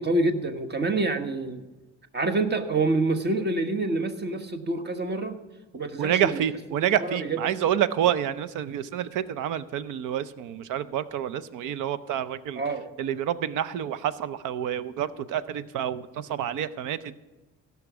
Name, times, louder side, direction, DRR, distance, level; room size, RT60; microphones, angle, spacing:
voice 1, 0.0-1.6 2.1-5.4 5.7-6.4 7.0-7.4 12.6-12.9 16.5-16.6, right 2 dB, 35° right, 6 dB, 1.3 m, -27 dB
voice 2, 6.0-12.6 13.0-17.2, right 10 dB, 90° right, 16 dB, 0.6 m, -28 dB
16.5 x 5.9 x 6.1 m, 1.2 s
cardioid pair, 90°, 30 cm